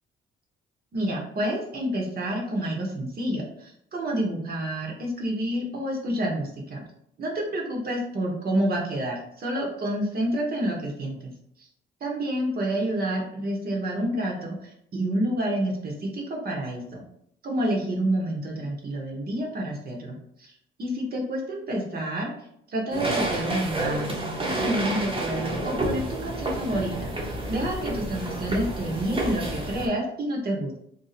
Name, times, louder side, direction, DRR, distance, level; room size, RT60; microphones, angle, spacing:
voice 1, 0.9-6.8 7.2-11.3 11.6-11.7 12.0-17.0 17.4-20.5 20.8-22.3 22.7-30.8, right 1 dB, 50° right, 0 dB, 1.1 m, -29 dB
sound 1, 22.9-29.9, right 1 dB, 25° right, 0.9 m, -30 dB
2.6 x 2.4 x 4.1 m, 0.72 s
cardioid pair, 90°, 20 cm